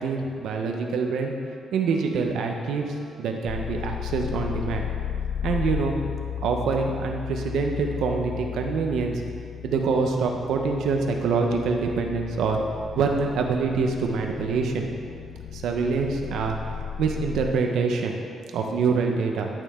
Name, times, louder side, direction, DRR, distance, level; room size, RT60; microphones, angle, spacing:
voice 1, 0.0-1.3 1.7-4.9 5.4-6.0 6.4-9.2 9.6-12.6 13.0-14.9 15.5-16.6 17.0-18.2 18.5-19.5, right 4 dB, 80° right, 2 dB, 1.0 m, -25 dB
sound 1, 3.5-17.5, left 9 dB, 55° left, 0.3 m, -34 dB
12.5 x 6.7 x 3.7 m, 2.2 s
cardioid pair, 130°, 0 cm